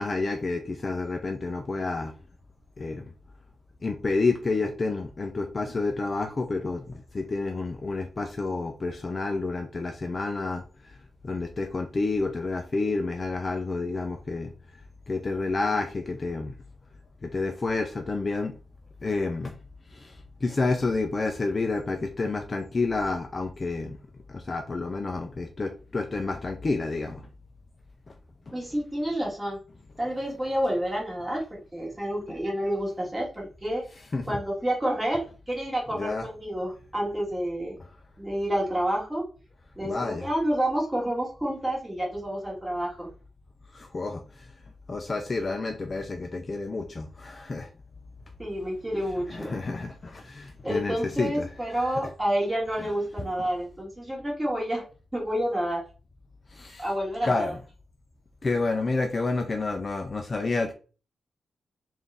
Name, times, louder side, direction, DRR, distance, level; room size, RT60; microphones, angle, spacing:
voice 1, 0.0-2.1 2.8-3.1 3.8-14.5 15.1-16.5 17.2-18.5 19.0-19.6 19.9-24.0 24.3-27.3 28.1-28.2 28.5-28.6 34.1-34.4 35.9-36.3 39.8-40.3 43.7-44.5 44.9-47.7 49.3-51.5 51.7-51.9 52.8-52.9 56.5-56.9 57.2-57.6 58.4-60.7, left 3 dB, 35° left, 5 dB, 0.4 m, -29 dB
voice 2, 28.5-29.6 30.0-33.8 34.3-37.8 38.2-39.3 39.8-43.1 48.4-49.5 50.6-54.8 55.1-55.9 56.8-57.5, equal, 15° right, -3 dB, 1.8 m, -29 dB
3.9 x 2.5 x 3.4 m, 0.36 s
wide cardioid pair, 120°, 0 cm